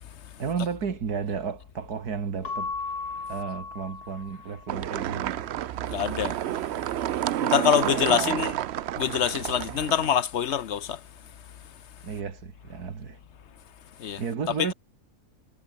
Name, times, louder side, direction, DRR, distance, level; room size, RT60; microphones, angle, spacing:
voice 1, 0.4-2.7 3.3-5.5 7.9-8.5 12.0-13.2 14.2-14.7, right 6 dB, 80° right, 2.3 m, -33 dB
Keyboard (musical) / Bell, 2.4-4.9, left 4 dB, 80° left, 3.5 m, -36 dB
sound 1, 4.7-10.1, right 12 dB, 65° right, 0.7 m, -30 dB
voice 2, 5.9-6.4 7.4-8.5 9.0-11.0 14.0-14.2 14.6-14.7, left 9 dB, 55° left, 1.0 m, -25 dB
omnidirectional pair, 1.6 m